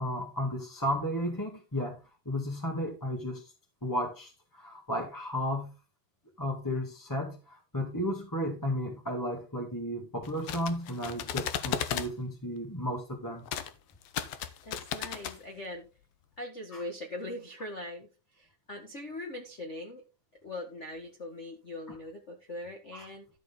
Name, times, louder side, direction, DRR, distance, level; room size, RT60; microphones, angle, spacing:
voice 1, 0.0-2.0 2.2-3.4 3.8-5.7 6.4-13.4 16.7-16.8 22.9-23.0, equal, 10° left, 0 dB, 1.3 m, -33 dB
sound 1, 10.2-12.1 13.5-13.7 14.0-15.4, left 10 dB, 65° left, 1.7 m, -35 dB
voice 2, 14.6-15.9 16.4-20.0 20.4-23.3, left 1 dB, 35° left, 3 dB, 1.1 m, -41 dB
13.0 x 6.6 x 3.8 m, 0.31 s
omnidirectional pair, 3.5 m